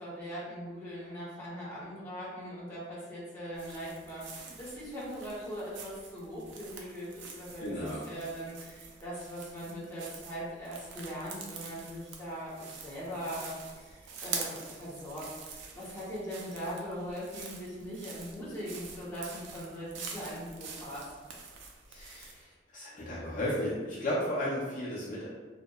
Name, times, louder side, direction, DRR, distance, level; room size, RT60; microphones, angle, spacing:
voice 1, 0.0-7.6 8.1-15.3 15.7-21.1, equal, 10° left, -9 dB, 0.8 m, -40 dB
sound 1, 3.5-22.4, right 5 dB, 75° right, 0.4 m, -46 dB
voice 2, 7.6-8.0 21.9-25.3, left 1 dB, 45° left, -8 dB, 0.5 m, -34 dB
2.7 x 2.0 x 2.2 m, 1.4 s
head